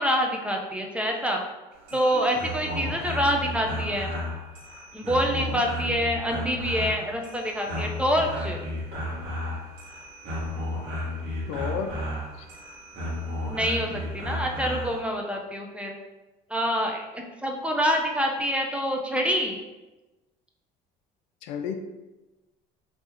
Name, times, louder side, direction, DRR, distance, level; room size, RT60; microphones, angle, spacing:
voice 1, 0.0-1.4 1.9-4.1 4.9-8.6 13.5-16.0 16.5-19.6, equal, 5° right, 1 dB, 0.6 m, -26 dB
sound 1, 1.7-15.0, left 1 dB, 70° right, 1.4 m, -33 dB
voice 2, 5.3-5.6 11.5-11.9 21.4-21.7, left 7 dB, 70° left, 6 dB, 0.4 m, -32 dB
3.0 x 2.9 x 3.4 m, 1.1 s
supercardioid pair, 75°, 21 cm